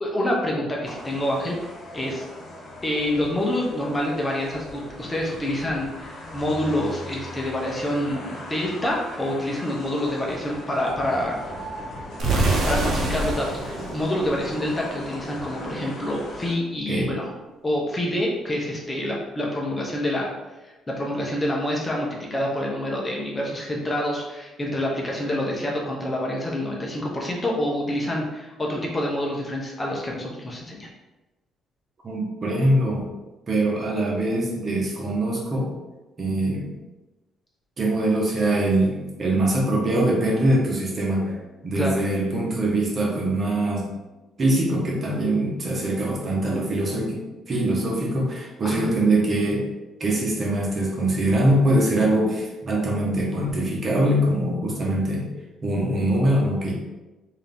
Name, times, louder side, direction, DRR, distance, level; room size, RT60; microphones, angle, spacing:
voice 1, 0.0-2.2 2.8-11.4 12.3-17.3 17.6-20.3 20.6-30.9 41.7-42.0 48.6-48.9, left 1 dB, 20° left, -2 dB, 0.9 m, -27 dB
sound 1, 0.8-16.5, left 1 dB, 60° left, 1.2 m, -38 dB
sound 2, 12.2-15.1, right 2 dB, 60° right, 1.0 m, -25 dB
voice 2, 32.0-33.1 33.5-35.7 36.2-36.7 37.8-43.9 44.4-47.2 47.5-49.6 50.0-55.3 55.6-56.7, right 1 dB, 40° right, -3 dB, 1.2 m, -23 dB
3.6 x 2.9 x 3.5 m, 1.1 s
supercardioid pair, 80°, 0 cm